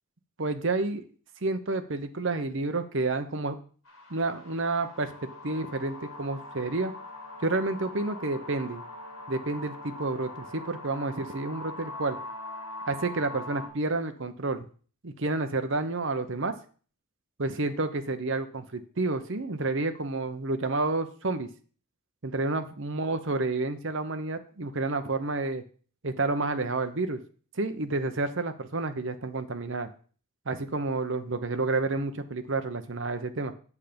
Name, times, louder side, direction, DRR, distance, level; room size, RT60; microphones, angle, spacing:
voice 1, 0.4-1.0 1.4-3.6 4.1-6.9 7.4-8.8 9.3-12.2 12.9-14.7 15.0-16.5 17.4-21.5 22.2-25.6 26.0-27.2 27.5-29.9 30.5-33.5, right 3 dB, 55° right, 9 dB, 0.9 m, -30 dB
sound 1, 3.9-13.7, left 2 dB, 65° left, 3.1 m, -42 dB
8.3 x 7.0 x 5.2 m, 0.42 s
head